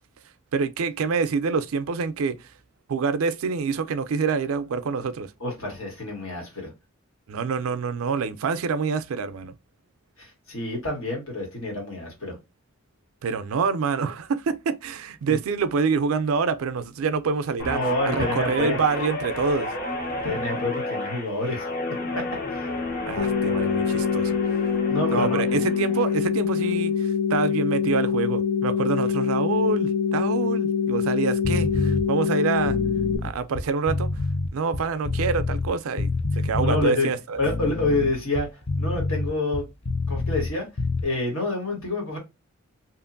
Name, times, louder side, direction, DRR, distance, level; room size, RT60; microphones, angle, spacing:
voice 1, 0.5-2.4 2.9-5.3 7.3-9.5 13.2-17.8 18.1-19.7 23.1-24.4 25.1-32.8 33.2-34.1 34.5-36.1 36.4-37.4, right 5 dB, 80° right, 0.4 m, -26 dB
voice 2, 5.4-6.7 10.2-12.4 15.3-15.4 17.7-18.8 20.2-21.7 22.1-22.2 22.5-22.7 24.9-25.6 36.6-37.1 37.4-39.6 40.1-40.7 41.0-42.2, left 2 dB, 70° left, 1.5 m, -28 dB
Guitar, 17.6-26.2 26.6-26.9, left 2 dB, 45° left, 0.8 m, -31 dB
sound 1, 23.2-33.2, left 6 dB, 90° left, 0.4 m, -24 dB
sound 2, 31.4-32.0 32.6-35.7 36.0-36.8 37.4-40.5 40.8-41.0, left 3 dB, 30° left, 0.4 m, -27 dB
2.9 x 2.5 x 2.5 m
head